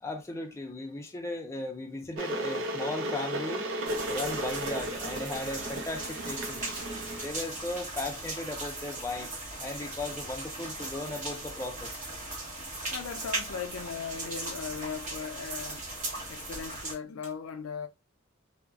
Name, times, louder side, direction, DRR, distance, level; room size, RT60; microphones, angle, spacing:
voice 1, 0.0-3.6 4.1-6.6 7.2-9.3 9.6-12.1, left 2 dB, 15° left, 0.4 m, -37 dB
Water / Boiling, 2.2-7.3, right 1 dB, 60° right, 0.5 m, -34 dB
sound 1, 3.8-16.9, right 2 dB, 35° right, 1.1 m, -38 dB
sound 2, 11.9-12.3 12.8-13.1 13.8-14.1 14.8-15.2 16.1-16.6 17.2-17.3, equal, 10° right, 1.4 m, -54 dB
voice 2, 12.9-15.8 16.3-17.9, left 6 dB, 70° left, 0.4 m, -38 dB
2.4 x 2.0 x 3.4 m
head